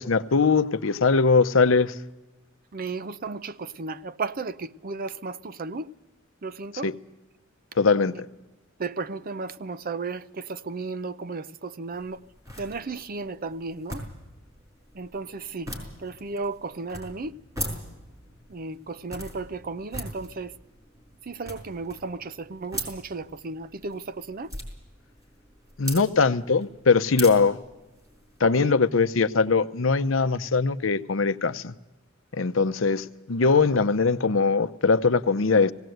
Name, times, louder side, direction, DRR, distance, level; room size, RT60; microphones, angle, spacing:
voice 1, 0.0-1.9 6.8-6.9 7.8-8.3 25.8-27.6 28.4-31.7 32.4-35.7, left 4 dB, 70° left, 0.7 m, -21 dB
voice 2, 2.7-5.9 6.4-6.9 8.1-8.2 8.8-12.2 12.6-14.0 14.9-15.7 16.0-17.3 18.5-20.5 21.3-24.5 28.4-28.8, right 4 dB, 45° right, 0.6 m, -34 dB
sound 1, 11.9-28.4, equal, 15° right, 5.2 m, -41 dB
19.0 x 17.5 x 7.9 m
head